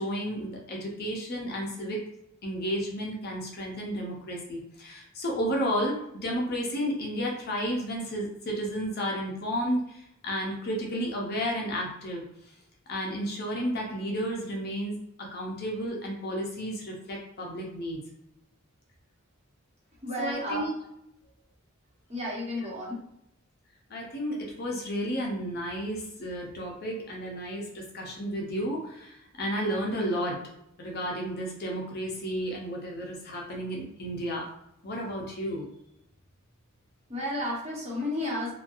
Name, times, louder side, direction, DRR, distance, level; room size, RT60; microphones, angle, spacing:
voice 1, 0.0-2.0 2.4-5.9 6.2-12.2 12.9-18.0 20.2-20.7 23.9-30.4 30.8-34.5 34.8-35.7, equal, 50° left, -1 dB, 0.7 m, -32 dB
voice 2, 20.0-20.7 22.1-23.0 37.1-38.5, left 1 dB, 30° right, -6 dB, 1.1 m, -32 dB
3.0 x 2.3 x 2.6 m, 0.77 s
head